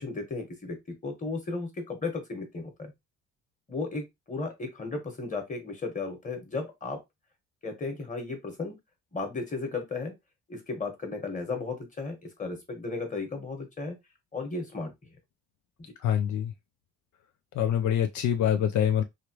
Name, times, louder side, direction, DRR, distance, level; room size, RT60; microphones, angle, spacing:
voice 1, 0.0-2.9 3.7-7.0 7.6-8.8 9.1-10.2 10.5-14.0 14.3-14.9 15.8-15.9, left 3 dB, 25° left, 1.3 m, -35 dB
voice 2, 16.0-16.5 17.6-19.0, left 9 dB, 75° left, 0.5 m, -25 dB
3.2 x 2.5 x 2.9 m
cardioid pair, 90°, 30 cm